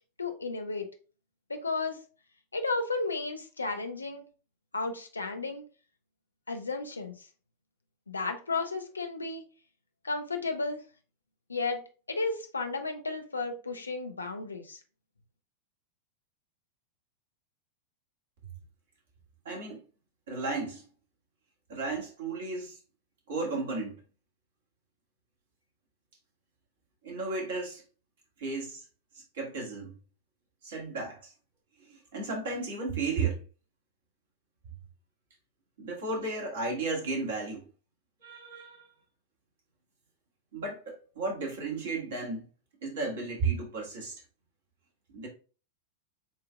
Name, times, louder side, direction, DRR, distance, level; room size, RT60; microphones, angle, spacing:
voice 1, 0.2-0.9 1.5-2.0 2.5-4.2 4.7-5.6 6.5-7.3 8.1-9.4 10.0-10.8 11.5-11.8 12.1-14.8, left 3 dB, 80° left, 0.7 m, -33 dB
voice 2, 19.5-19.8 20.3-20.9 21.7-22.8 23.3-24.0 27.0-27.8 28.4-28.8 29.3-30.0 30.6-31.3 31.8-33.4 35.8-37.7 38.2-38.9 40.5-42.4 42.8-44.1 45.1-45.3, right 3 dB, 60° right, 1.8 m, -34 dB
7.3 x 2.8 x 2.3 m
figure-of-eight pair, 90°, 0 cm